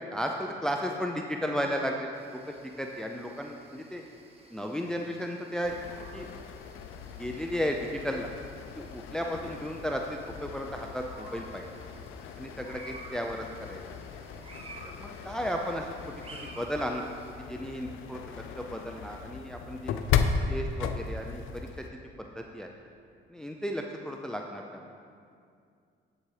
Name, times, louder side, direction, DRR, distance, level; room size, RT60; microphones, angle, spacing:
voice 1, 0.1-2.1 2.5-4.0 4.5-5.7 6.1-6.3 7.2-8.3 8.8-11.7 12.4-13.4 13.7-13.8 15.0-15.9 16.6-17.0 17.5-19.9 20.5-21.7 22.2-22.7 23.3-24.8, equal, 5° left, 2 dB, 0.5 m, -34 dB
sound 1, 2.1-17.3, right 2 dB, 30° right, 1.3 m, -52 dB
sound 2, 5.6-21.9, left 6 dB, 90° left, 0.5 m, -36 dB
8.2 x 7.5 x 4.8 m, 2.3 s
cardioid pair, 90°, 20 cm